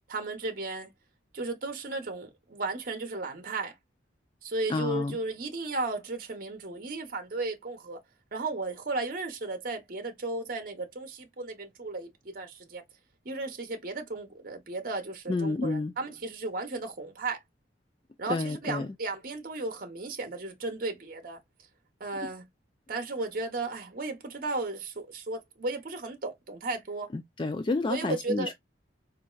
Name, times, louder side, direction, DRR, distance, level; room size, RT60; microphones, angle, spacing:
voice 1, 0.1-0.9 1.3-3.7 4.4-8.0 8.3-12.8 13.2-17.4 18.2-21.4 22.0-22.5 22.9-27.1 27.9-28.5, right 3 dB, 50° right, 0.8 m, -35 dB
voice 2, 4.7-5.2 15.3-15.9 18.3-18.9 27.1-28.5, left 3 dB, 25° left, 0.3 m, -30 dB
4.1 x 2.6 x 2.3 m
head